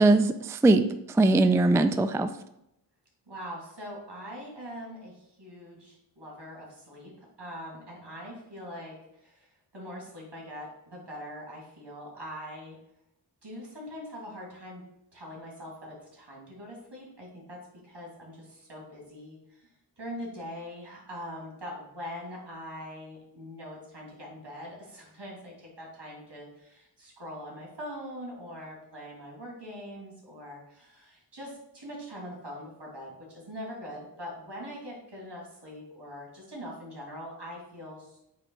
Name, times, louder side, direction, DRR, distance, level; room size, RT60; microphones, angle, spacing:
voice 1, 0.0-2.3, right 2 dB, 5° right, 9 dB, 0.3 m, -21 dB
voice 2, 3.3-9.5 9.7-12.8 13.4-14.8 15.1-19.7 20.0-38.2, equal, 70° right, -2 dB, 2.5 m, -42 dB
8.5 x 3.0 x 4.6 m, 0.82 s
wide cardioid pair, 60°, 43 cm